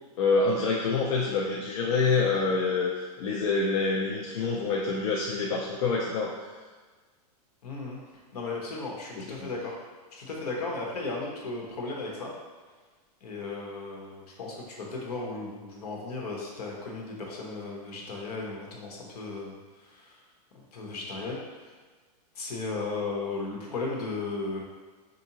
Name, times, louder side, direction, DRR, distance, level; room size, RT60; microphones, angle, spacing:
voice 1, 0.2-2.9 3.2-6.3 9.4-9.5, left 4 dB, 55° left, -3 dB, 0.5 m, -26 dB
voice 2, 7.6-8.0 8.3-9.8 10.1-12.3 13.2-20.2 20.5-21.7 22.3-24.6, left 3 dB, 70° left, -2 dB, 1.0 m, -35 dB
4.5 x 2.6 x 2.8 m, 1.4 s
supercardioid pair, 155°, 21 cm